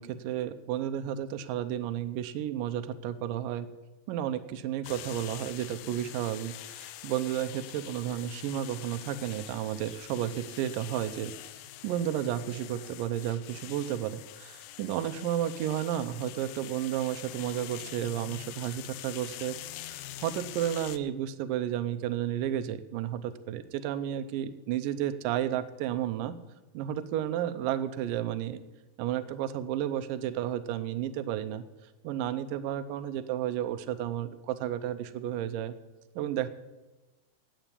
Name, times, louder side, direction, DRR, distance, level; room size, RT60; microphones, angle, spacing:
voice 1, 0.0-3.7 4.1-11.3 11.8-19.6 19.8-26.4 26.7-28.6 29.0-31.6 32.0-35.7 36.2-36.5, right 11 dB, 80° right, 10 dB, 2.1 m, -32 dB
sound 1, 4.8-21.0, left 14 dB, 85° left, 1.9 m, -45 dB
9.1 x 9.0 x 9.8 m, 1.1 s
omnidirectional pair, 4.4 m